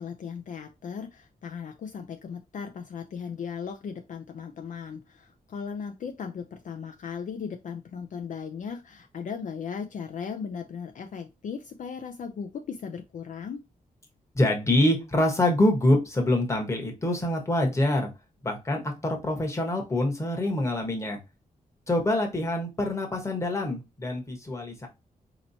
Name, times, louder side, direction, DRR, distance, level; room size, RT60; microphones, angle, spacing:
voice 1, 0.0-13.6, left 6 dB, 60° left, 5 dB, 0.5 m, -37 dB
voice 2, 14.3-18.1 18.4-21.2 21.9-24.9, left 1 dB, 20° left, 2 dB, 1.0 m, -25 dB
4.3 x 2.9 x 2.6 m, 0.25 s
wide cardioid pair, 170°, 15 cm